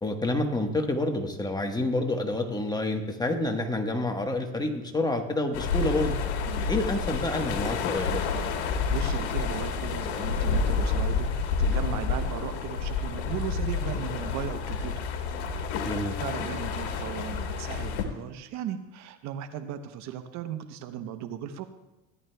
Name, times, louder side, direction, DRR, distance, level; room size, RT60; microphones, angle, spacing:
voice 1, 0.0-6.2 6.7-8.2 15.8-16.2, left 2 dB, 10° left, 4 dB, 1.3 m, -28 dB
sound 1, 5.5-18.0, left 5 dB, 85° left, 1.4 m, -29 dB
voice 2, 8.9-11.3 11.6-15.1 15.4-21.7, right 9 dB, 60° right, 9 dB, 0.9 m, -37 dB
16.5 x 11.0 x 2.3 m, 1.0 s
supercardioid pair, 95°, 32 cm